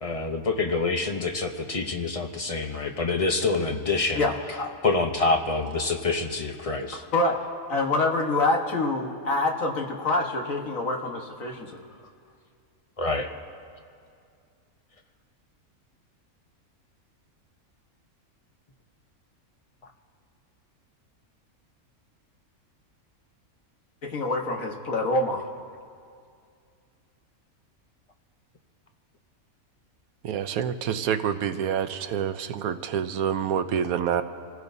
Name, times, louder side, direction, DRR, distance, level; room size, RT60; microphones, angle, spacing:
voice 1, 0.0-4.3 4.8-7.0 13.0-13.3, left 3 dB, 35° left, 5 dB, 0.7 m, -26 dB
voice 2, 4.1-4.7 7.1-7.4 7.7-11.8 24.0-25.4, left 2 dB, 70° left, 1 dB, 1.7 m, -26 dB
voice 3, 30.2-34.2, right 8 dB, 85° right, 10 dB, 1.2 m, -27 dB
27.5 x 15.5 x 2.7 m, 2.3 s
omnidirectional pair, 1.5 m